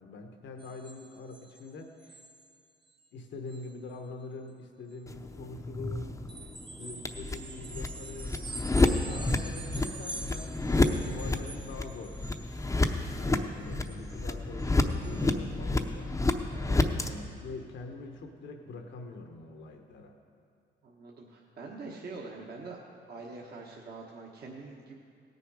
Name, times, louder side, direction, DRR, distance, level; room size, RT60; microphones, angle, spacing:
voice 1, 0.0-2.2 3.1-6.1 6.8-8.5 8.8-12.2 12.9-16.4 16.6-20.1, left 3 dB, 65° left, 4 dB, 1.1 m, -44 dB
sound 1, 0.6-1.7 2.0-2.6 2.9-3.1 3.5-3.7 6.3-12.8 13.1-14.3 14.6-14.7 14.9-15.3 15.8-15.9, right 3 dB, 25° right, 0.9 m, -45 dB
sound 2, 5.1-17.1, left 2 dB, 15° left, 0.7 m, -30 dB
voice 2, 20.8-22.8 23.1-24.9, right 3 dB, 55° right, -2 dB, 1.3 m, -44 dB
17.5 x 6.8 x 4.8 m, 2.3 s
cardioid pair, 90°, 20 cm